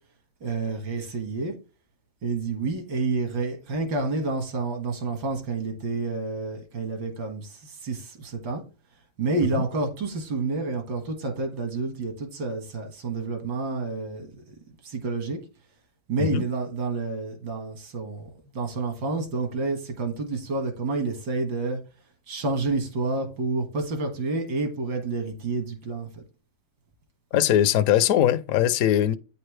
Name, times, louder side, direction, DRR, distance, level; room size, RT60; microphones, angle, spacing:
voice 1, 0.4-1.6 2.2-8.6 9.2-14.3 14.8-15.4 16.1-21.8 22.3-26.2 27.3-27.5, right 3 dB, 75° right, 2.3 m, -29 dB
voice 2, 27.3-29.2, left 11 dB, 70° left, 0.8 m, -21 dB
9.3 x 5.5 x 3.2 m
omnidirectional pair, 2.0 m